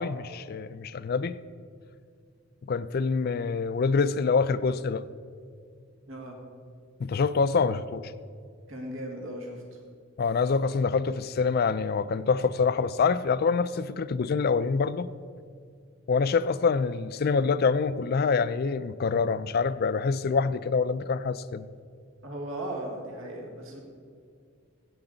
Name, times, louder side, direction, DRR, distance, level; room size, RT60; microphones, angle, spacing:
voice 1, 0.0-1.4 2.7-5.0 7.0-8.1 10.2-15.1 16.1-21.7, left 5 dB, 50° left, 15 dB, 0.4 m, -26 dB
voice 2, 6.1-6.4 8.7-9.6 22.2-23.8, right 1 dB, 80° right, 1 dB, 1.7 m, -37 dB
16.0 x 7.9 x 3.9 m, 2.2 s
head